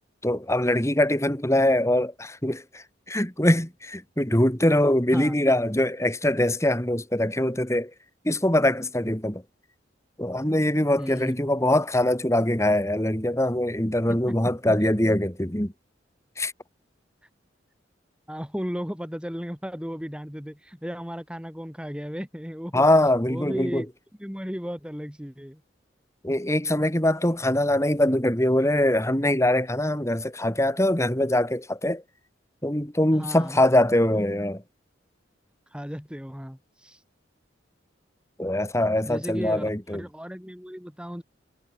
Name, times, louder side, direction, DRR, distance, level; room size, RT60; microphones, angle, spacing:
voice 1, 0.2-7.9 8.2-9.4 10.2-15.7 16.4-16.5 22.7-23.8 26.2-32.0 32.6-34.6 38.4-40.0, left 1 dB, 15° left, 3.2 m, -23 dB
voice 2, 11.0-11.5 14.1-14.3 14.8-14.9 18.3-22.8 23.3-23.9 24.2-25.6 33.1-33.6 35.7-37.0 39.1-41.2, equal, 5° right, 4.8 m, -35 dB
head